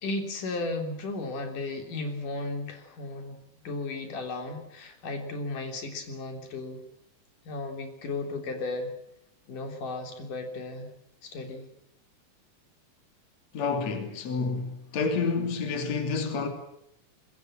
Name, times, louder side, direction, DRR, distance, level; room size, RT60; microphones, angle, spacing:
voice 1, 0.0-3.4 3.6-6.8 7.4-8.9 9.5-10.9 11.2-11.7, left 2 dB, 80° left, 5.0 m, -35 dB
voice 2, 13.5-16.5, left 4 dB, 55° left, 4.0 m, -29 dB
25.5 x 21.5 x 7.6 m
omnidirectional pair, 3.6 m